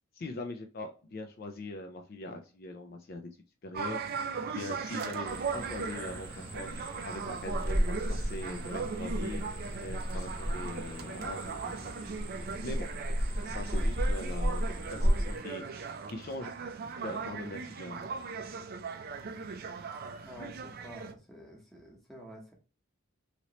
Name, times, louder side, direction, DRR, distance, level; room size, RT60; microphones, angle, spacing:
voice 1, 0.1-3.3 3.6-4.0 4.5-6.7 7.1-9.4 9.8-11.9 12.6-12.9 13.4-16.5 17.0-18.2, left 2 dB, 45° left, 0.4 m, -41 dB
sound 1, 3.7-21.1, right 5 dB, 45° right, 0.4 m, -39 dB
sound 2, 5.3-15.4, equal, 25° right, 0.8 m, -33 dB
voice 2, 20.2-22.5, equal, ahead, 0.9 m, -49 dB
3.0 x 2.9 x 2.8 m
head